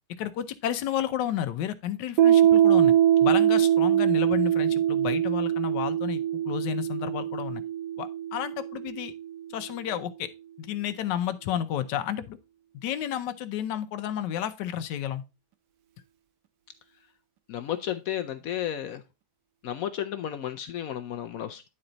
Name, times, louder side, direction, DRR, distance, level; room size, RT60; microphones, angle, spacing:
voice 1, 0.2-2.9 3.2-7.6 8.0-9.1 9.5-10.3 10.6-12.4 12.8-15.2, left 10 dB, 85° left, 1.3 m, -31 dB
Piano, 2.2-9.4, right 11 dB, 75° right, 1.3 m, -23 dB
voice 2, 17.5-19.0 19.6-21.7, left 11 dB, 70° left, 0.9 m, -33 dB
9.7 x 4.3 x 3.9 m
omnidirectional pair, 1.8 m